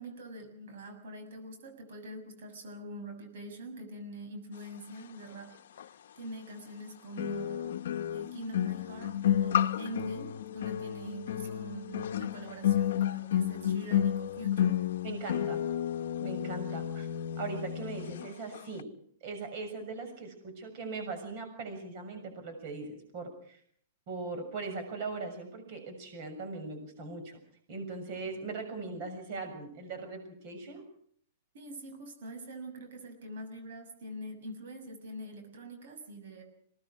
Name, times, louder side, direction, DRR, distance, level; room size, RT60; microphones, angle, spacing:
voice 1, 0.0-7.8 8.1-14.8 31.5-36.4, right 1 dB, 60° right, 6 dB, 6.6 m, -44 dB
sound 1, 5.8-5.9 7.2-18.3 18.5-18.8, left 10 dB, 70° left, 0.9 m, -31 dB
voice 2, 15.0-15.6 16.2-17.1 17.4-18.9 19.2-23.6 24.1-27.4 27.7-30.8, right 3 dB, 40° right, 6 dB, 6.7 m, -40 dB
26.5 x 19.0 x 6.4 m, 0.64 s
supercardioid pair, 165°, 0 cm